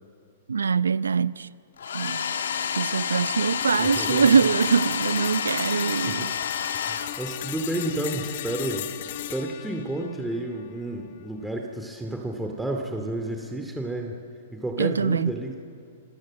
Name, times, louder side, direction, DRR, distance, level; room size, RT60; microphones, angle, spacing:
voice 1, 0.5-1.5 1.9-2.3 2.6-6.3 6.8-7.1 14.8-15.3, right 6 dB, 85° right, 0.7 m, -23 dB
Domestic sounds home sounds, 1.8-7.6, left 7 dB, 75° left, 1.7 m, -29 dB
sound 1, 3.6-11.6, left 12 dB, 60° left, 1.6 m, -37 dB
voice 2, 3.8-4.3 6.1-6.3 6.7-8.9 9.3-14.2 14.5-15.6, right 1 dB, 5° right, 2.5 m, -31 dB
29.0 x 22.0 x 7.6 m
hypercardioid pair, 115°, 0 cm